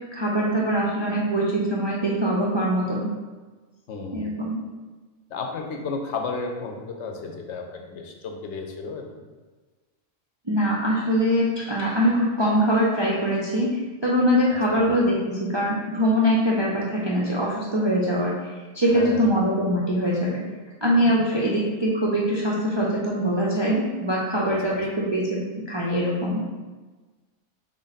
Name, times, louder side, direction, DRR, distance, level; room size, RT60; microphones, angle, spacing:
voice 1, 0.1-3.1 4.1-4.6 10.5-13.7 14.0-18.3 18.7-20.4 20.8-26.4, equal, 40° right, -4 dB, 0.3 m, -23 dB
voice 2, 3.9-4.3 5.3-9.3 14.7-15.0 18.8-19.3 21.0-21.5 24.4-25.0, left 4 dB, 70° left, 3 dB, 0.9 m, -34 dB
4.0 x 3.3 x 4.0 m, 1.3 s
omnidirectional pair, 1.3 m